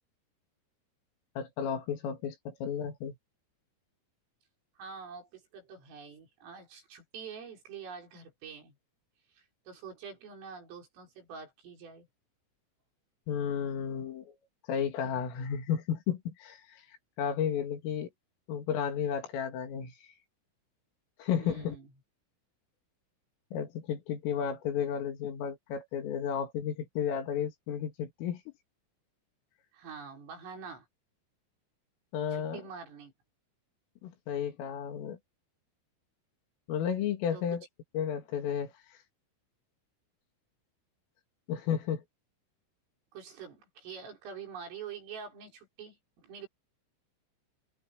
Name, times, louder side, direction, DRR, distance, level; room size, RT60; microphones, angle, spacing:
voice 1, 1.4-3.2 13.3-14.3 14.7-16.6 17.2-18.1 18.5-19.9 21.2-21.8 23.5-28.4 32.1-32.6 34.0-35.2 36.7-37.7 38.0-38.7 41.5-42.0, left 8 dB, 80° left, 5.4 m, -33 dB
voice 2, 4.8-8.8 9.4-12.1 21.4-21.9 29.7-30.9 32.3-33.1 37.3-37.4 43.1-46.5, right 6 dB, 80° right, 8.8 m, -46 dB
omnidirectional pair, 5.8 m